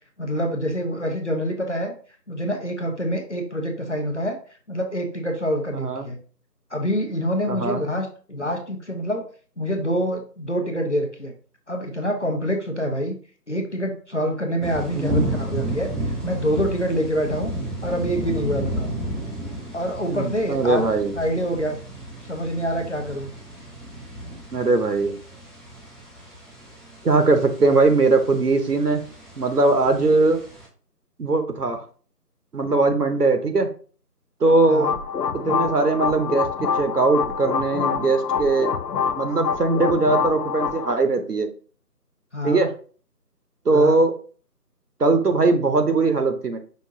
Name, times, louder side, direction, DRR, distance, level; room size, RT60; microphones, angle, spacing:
voice 1, 0.2-1.9 2.3-4.4 4.7-6.2 6.7-9.2 9.6-11.3 11.7-13.2 13.5-17.6 17.8-18.9 19.7-20.9 21.1-21.8 22.2-23.3 34.7-34.9 42.3-42.6 43.7-44.0, equal, 45° left, 3 dB, 0.9 m, -26 dB
voice 2, 5.7-6.1 7.5-7.8 14.9-15.3 20.1-21.1 24.5-25.2 27.0-29.0 29.4-30.4 31.2-31.8 32.5-33.7 34.4-34.9 35.3-38.7 39.1-41.5 42.4-42.7 43.6-44.1 45.0-46.6, right 3 dB, 70° right, 7 dB, 0.9 m, -20 dB
sound 1, 14.6-30.7, right 1 dB, ahead, 0.6 m, -33 dB
sound 2, 34.5-40.9, left 7 dB, 80° left, 0.6 m, -26 dB
5.3 x 2.5 x 3.7 m, 0.42 s
figure-of-eight pair, 170°, 48 cm